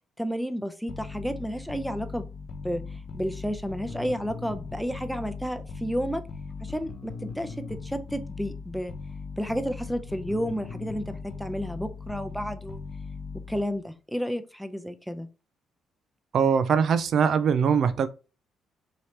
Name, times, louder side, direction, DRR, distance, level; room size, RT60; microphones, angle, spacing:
voice 1, 0.2-2.3 2.6-2.8 3.1-6.2 6.6-8.9 9.4-12.8 13.5-15.3, equal, ahead, 0.6 m, -31 dB
sound 1, 0.9-13.8, left 4 dB, 60° left, 0.9 m, -39 dB
voice 2, 16.3-18.1, right 7 dB, 60° right, 0.4 m, -22 dB
4.6 x 2.9 x 3.2 m
cardioid pair, 85°, 0 cm